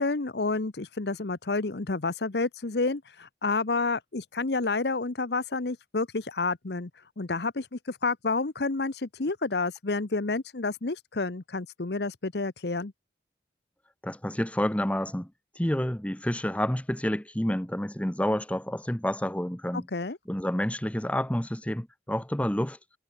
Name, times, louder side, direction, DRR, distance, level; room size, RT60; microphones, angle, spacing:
voice 1, 0.0-6.9 7.2-12.9 19.7-20.2, left 3 dB, 65° left, 1.0 m, -29 dB
voice 2, 14.0-15.3 15.6-19.9 20.3-22.8, equal, 5° left, 0.9 m, -29 dB
head